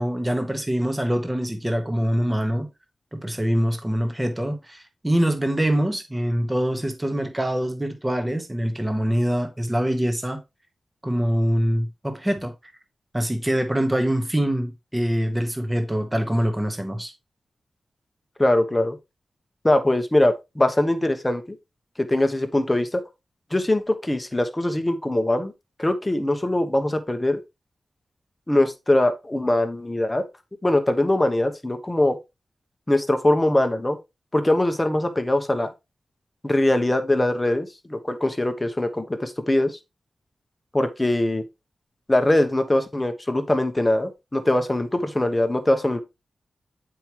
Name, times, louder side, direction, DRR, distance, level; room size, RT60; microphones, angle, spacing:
voice 1, 0.0-2.7 3.1-10.4 11.0-12.5 13.1-17.1, equal, 10° right, 1.1 m, -24 dB
voice 2, 18.4-19.0 19.6-21.6 22.0-23.0 23.5-25.5 25.8-27.4 28.5-30.3 30.6-32.2 32.9-34.0 34.3-35.7 36.4-39.8 40.7-41.4 42.1-46.0, left 1 dB, 15° left, 0.9 m, -22 dB
8.9 x 4.8 x 2.9 m
wide cardioid pair, 160°, 0 cm